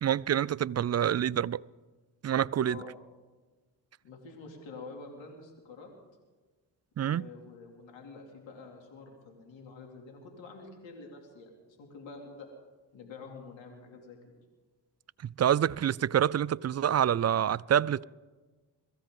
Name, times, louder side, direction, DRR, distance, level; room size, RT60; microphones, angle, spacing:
voice 1, 0.0-1.6 2.2-2.8 7.0-7.3 15.4-18.0, right 10 dB, 40° right, 0.4 m, -27 dB
voice 2, 4.0-5.9 7.0-12.5 12.9-14.2, left 4 dB, 85° left, 2.9 m, -47 dB
23.5 x 14.5 x 3.8 m
supercardioid pair, 50°, 45 cm